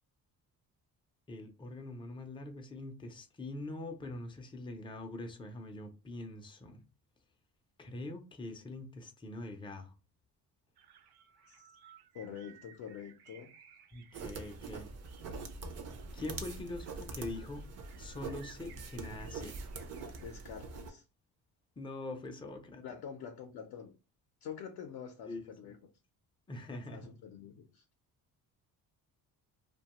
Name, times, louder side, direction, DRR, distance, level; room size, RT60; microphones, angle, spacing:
voice 1, 1.3-6.8 7.8-9.9 13.9-14.9 16.1-19.6 21.8-22.8 25.2-25.4 26.5-27.1, left 2 dB, 15° left, 0.3 m, -43 dB
sound 1, 10.7-14.8 15.0-20.4, right 9 dB, 90° right, 0.5 m, -61 dB
voice 2, 12.1-13.5 20.2-21.0 22.8-24.0 24.4-25.8 26.9-27.8, left 8 dB, 70° left, 0.5 m, -46 dB
sound 2, 14.1-20.9, right 3 dB, 45° right, 0.5 m, -44 dB
2.8 x 2.2 x 2.8 m
cardioid pair, 160°, 38 cm